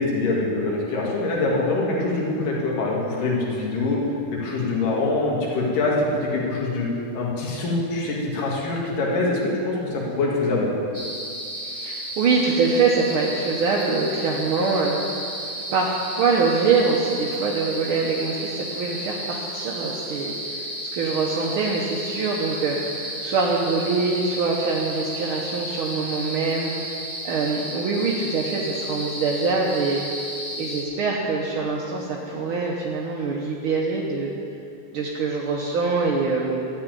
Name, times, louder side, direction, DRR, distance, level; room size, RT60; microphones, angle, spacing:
voice 1, 0.0-4.0 4.3-6.9 7.1-10.7, left 2 dB, 85° left, -4 dB, 3.5 m, -24 dB
sound 1, 10.9-30.8, right 1 dB, 15° left, 0.6 m, -33 dB
voice 2, 11.6-15.2 15.7-26.7 27.2-30.0 30.6-34.3 34.9-36.7, right 4 dB, 70° right, -2 dB, 1.2 m, -24 dB
12.5 x 7.1 x 9.2 m, 2.7 s
omnidirectional pair, 3.7 m